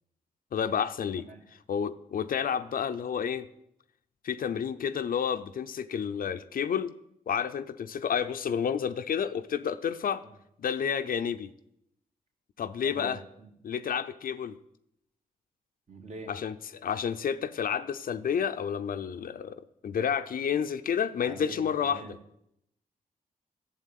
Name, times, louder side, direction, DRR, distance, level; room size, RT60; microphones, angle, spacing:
voice 1, 0.5-1.3 1.7-3.5 4.2-6.9 7.3-10.2 10.6-11.5 12.6-13.2 13.6-14.6 16.3-22.1, left 7 dB, 70° left, 9 dB, 0.7 m, -30 dB
voice 2, 12.8-13.5 15.9-16.3 21.2-22.2, right 2 dB, 50° right, 3 dB, 2.5 m, -44 dB
12.5 x 7.3 x 9.2 m, 0.78 s
cardioid pair, 80°, 15 cm